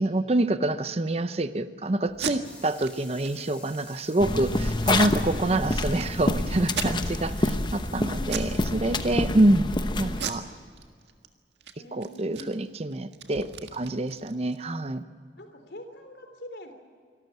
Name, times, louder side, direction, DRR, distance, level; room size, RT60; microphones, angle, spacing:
voice 1, 0.0-9.6 9.9-10.4 11.9-15.1, right 1 dB, 35° right, 12 dB, 0.7 m, -26 dB
Packing tape duct tape, 2.1-2.3 2.8-2.9 3.2-3.3 3.7-4.1 4.8-5.6 6.0-6.1 6.6-7.3 7.7-7.9 8.3-8.6 8.9-9.5 10.1-11.3 11.6-11.7 12.0-14.6, right 7 dB, 85° right, 1.7 m, -37 dB
sound 1, 2.4-8.7, left 2 dB, 5° left, 3.5 m, -49 dB
sound 2, 4.2-10.2, left 2 dB, 25° left, 0.9 m, -27 dB
voice 2, 4.9-5.5 8.0-8.7 11.8-12.5 15.4-16.7, left 1 dB, 70° left, 6 dB, 3.3 m, -43 dB
25.5 x 13.5 x 9.3 m, 2.1 s
head